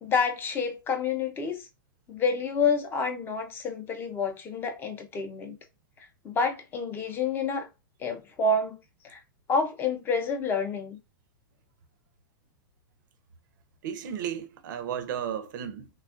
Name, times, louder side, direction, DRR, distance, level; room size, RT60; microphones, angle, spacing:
voice 1, 0.0-1.6 2.1-5.6 6.2-7.7 8.0-8.8 9.0-9.2 9.5-11.0, left 4 dB, 20° left, 0.6 m, -28 dB
voice 2, 13.8-15.9, right 8 dB, 65° right, 0.6 m, -34 dB
3.3 x 2.3 x 2.5 m
supercardioid pair, 155°, 11 cm